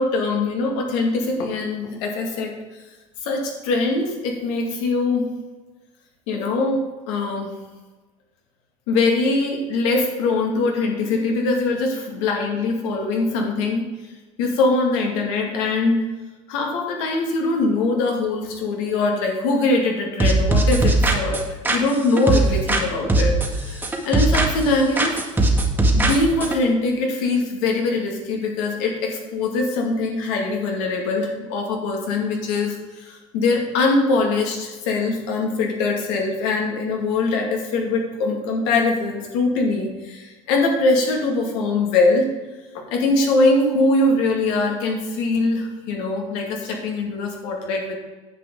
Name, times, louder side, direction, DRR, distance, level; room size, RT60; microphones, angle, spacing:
voice 1, 0.0-2.6 3.2-5.3 6.3-7.5 8.9-13.9 14.4-16.1 16.5-25.2 25.9-42.3 42.7-48.0, left 3 dB, 75° left, 1 dB, 2.4 m, -22 dB
sound 1, 20.2-22.8 23.1-24.7 25.0-26.6, right 2 dB, 10° right, 1.6 m, -19 dB
9.8 x 7.7 x 4.0 m, 1.2 s
supercardioid pair, 95°, 17 cm